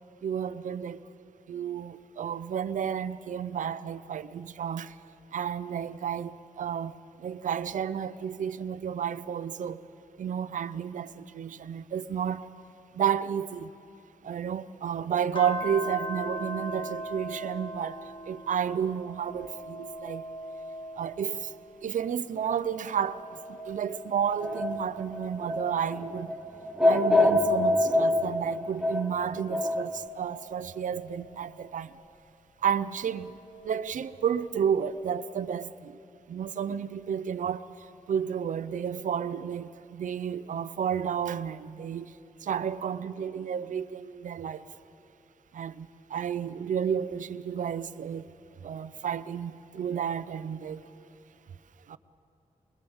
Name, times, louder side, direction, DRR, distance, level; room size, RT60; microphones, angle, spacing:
voice 1, 0.2-1.0 1.5-4.9 5.3-9.8 10.2-12.5 12.9-13.7 14.2-20.2 21.0-21.5 21.8-23.2 23.5-26.4 26.8-31.9 32.6-33.3 33.6-36.0 36.3-37.7 38.1-42.1 42.4-44.6 45.5-48.2 48.6-50.8 51.9-52.0, right 8 dB, 75° right, 0.6 m, -31 dB
sound 1, 15.3-22.1 22.5-25.4 26.0-28.8 29.5-32.0 33.3-34.4, right 1 dB, 40° left, 1.0 m, -42 dB
sound 2, 24.4-30.0, left 2 dB, 5° right, 0.7 m, -26 dB
24.5 x 21.5 x 7.1 m
wide cardioid pair, 180°, 13 cm